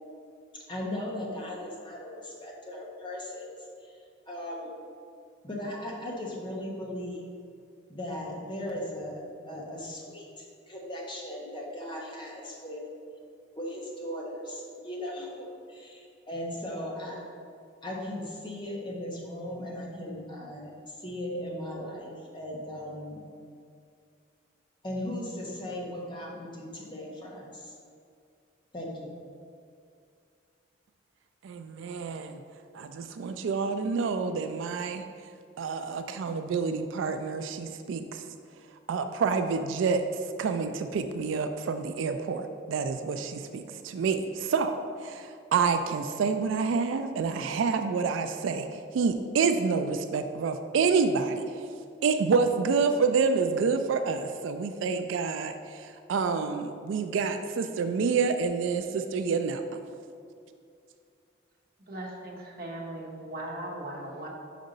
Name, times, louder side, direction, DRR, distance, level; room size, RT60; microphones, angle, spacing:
voice 1, 0.5-3.5 3.8-4.0 4.3-4.8 5.4-7.2 7.9-12.8 13.5-17.2 17.8-23.2 24.8-27.7 28.7-29.2, left 1 dB, 25° left, -2 dB, 0.9 m, -37 dB
voice 2, 31.4-32.4 32.7-35.0 35.6-38.2 38.9-40.0 40.4-51.6 52.0-59.8, right 5 dB, 80° right, 8 dB, 0.3 m, -28 dB
voice 3, 61.8-64.3, right 1 dB, 50° right, -3 dB, 1.0 m, -38 dB
5.3 x 5.1 x 3.9 m, 2.4 s
head